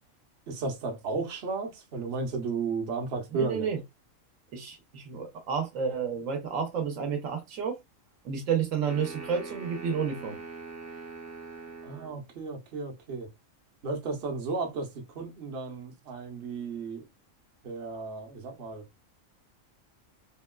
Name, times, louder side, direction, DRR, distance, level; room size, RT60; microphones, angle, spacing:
voice 1, 0.5-3.7 11.8-13.3 13.8-17.1 17.6-18.9, right 4 dB, 55° right, 0.9 m, -34 dB
voice 2, 3.3-3.8 4.5-7.8 8.2-10.4, right 6 dB, 75° right, 1.1 m, -30 dB
sound 1, 8.9-12.2, right 4 dB, 25° right, 0.4 m, -42 dB
3.5 x 2.2 x 2.2 m
omnidirectional pair, 1.4 m